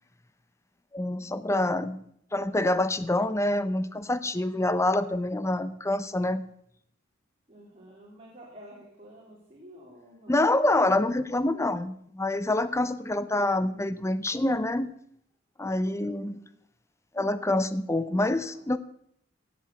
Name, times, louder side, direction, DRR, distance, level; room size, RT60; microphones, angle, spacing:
voice 1, 0.9-2.0 2.3-6.4 10.3-14.9 15.6-16.4 17.1-18.8, left 1 dB, 15° left, 14 dB, 0.7 m, -26 dB
voice 2, 7.5-10.4 15.9-16.5 18.4-18.7, equal, 30° right, -4 dB, 3.2 m, -50 dB
16.5 x 7.5 x 7.0 m, 0.69 s
head